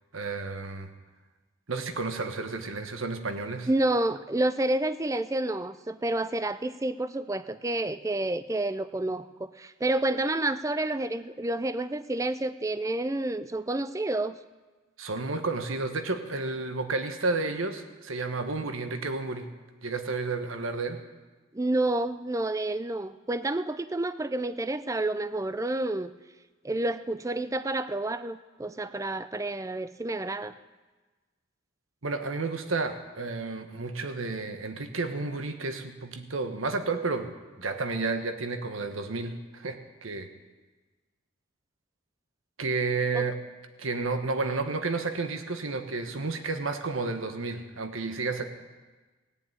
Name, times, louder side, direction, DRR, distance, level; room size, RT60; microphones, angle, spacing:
voice 1, 0.1-0.9 1.7-3.7 15.0-19.5 19.8-21.0 32.0-37.3 37.6-40.3 42.6-43.3 43.8-48.5, right 3 dB, 80° right, 7 dB, 1.3 m, -31 dB
voice 2, 3.7-14.4 21.5-26.1 26.6-30.6 43.1-43.3, right 2 dB, 15° right, 13 dB, 0.4 m, -29 dB
18.0 x 7.1 x 9.1 m, 1.3 s
head